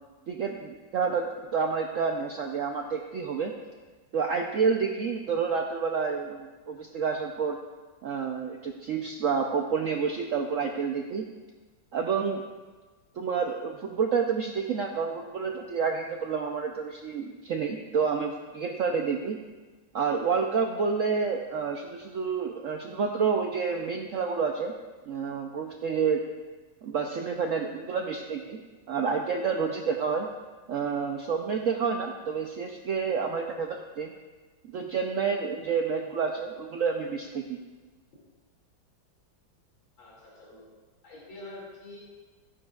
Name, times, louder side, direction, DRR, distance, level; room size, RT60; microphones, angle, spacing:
voice 1, 0.3-1.2 1.5-3.5 4.1-7.6 8.0-11.3 11.9-12.4 13.2-19.4 19.9-24.7 25.1-26.2 26.8-28.6 28.9-30.3 30.7-34.1 34.7-37.6, right 5 dB, 85° right, 2 dB, 0.7 m, -29 dB
voice 2, 40.0-40.7 41.0-42.0, left 2 dB, 75° left, -6 dB, 3.2 m, -45 dB
14.0 x 9.7 x 2.4 m, 1.3 s
omnidirectional pair, 2.1 m